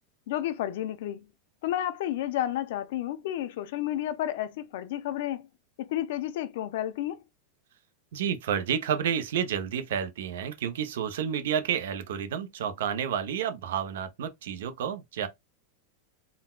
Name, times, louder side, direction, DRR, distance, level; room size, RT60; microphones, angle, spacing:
voice 1, 0.3-1.2 1.6-5.5 5.8-7.2, left 12 dB, 60° left, 0.5 m, -31 dB
voice 2, 8.1-15.3, right 8 dB, 75° right, 0.6 m, -30 dB
3.8 x 2.2 x 2.2 m
supercardioid pair, 165°, 0 cm